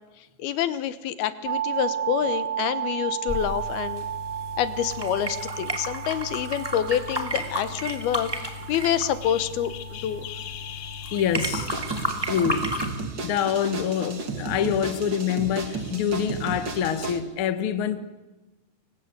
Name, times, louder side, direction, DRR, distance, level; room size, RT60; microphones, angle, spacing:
voice 1, 0.4-4.1 4.6-10.3, left 10 dB, 75° left, 13 dB, 3.0 m, -27 dB
sound 1, 1.4-11.2, right 10 dB, 70° right, 1.2 m, -34 dB
sound 2, 3.3-12.9, equal, 5° right, 2.4 m, -33 dB
voice 2, 9.9-11.7 12.3-12.7 13.2-18.0, left 8 dB, 50° left, 10 dB, 1.7 m, -27 dB
sound 3, 11.3-17.2, right 3 dB, 35° right, 2.2 m, -33 dB
29.0 x 24.5 x 8.1 m, 1.1 s
omnidirectional pair, 4.5 m